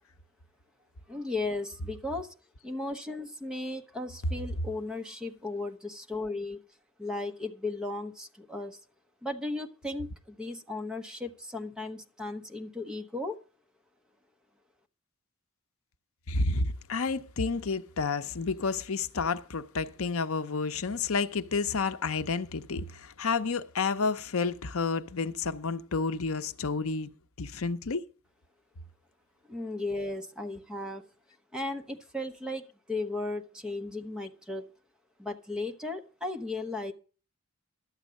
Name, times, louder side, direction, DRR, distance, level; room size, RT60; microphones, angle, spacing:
voice 1, 1.1-2.3 2.6-6.6 7.0-8.8 9.2-13.4 29.5-31.0 31.5-34.7 35.2-36.9, left 2 dB, 5° right, 1.0 m, -36 dB
voice 2, 16.3-27.1 27.4-28.0, left 4 dB, 70° left, 0.7 m, -30 dB
12.0 x 8.1 x 6.4 m
head